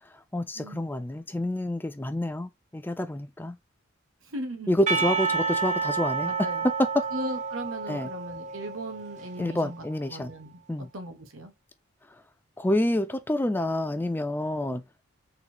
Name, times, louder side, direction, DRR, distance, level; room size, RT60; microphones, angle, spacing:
voice 1, 0.3-3.6 4.7-6.3 7.9-8.1 9.4-10.3 10.7-10.9 12.6-14.8, left 1 dB, 10° left, 0.3 m, -28 dB
voice 2, 4.2-5.0 6.2-6.7 7.1-10.6 10.9-11.5, right 1 dB, 75° right, 1.2 m, -38 dB
Percussion, 4.9-9.7, right 5 dB, 35° right, 0.6 m, -30 dB
4.4 x 4.0 x 2.8 m
head